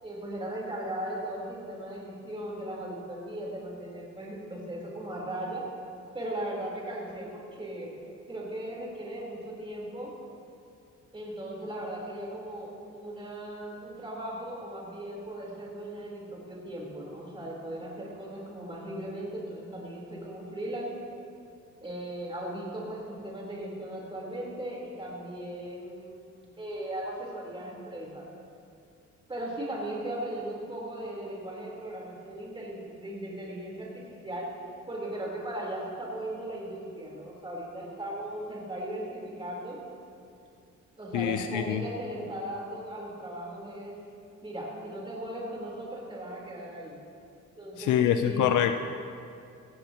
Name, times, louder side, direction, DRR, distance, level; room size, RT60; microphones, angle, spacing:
voice 1, 0.0-5.6 6.1-7.9 8.3-10.1 11.1-20.9 21.8-26.2 26.6-28.3 29.3-34.5 34.9-39.8 41.0-43.9 44.4-46.9 47.6-48.5, right 1 dB, 15° right, -4 dB, 3.8 m, -37 dB
voice 2, 41.1-41.8 47.8-48.7, left 10 dB, 80° left, 7 dB, 0.6 m, -25 dB
16.5 x 16.0 x 3.0 m, 2.5 s
cardioid pair, 90°, 30 cm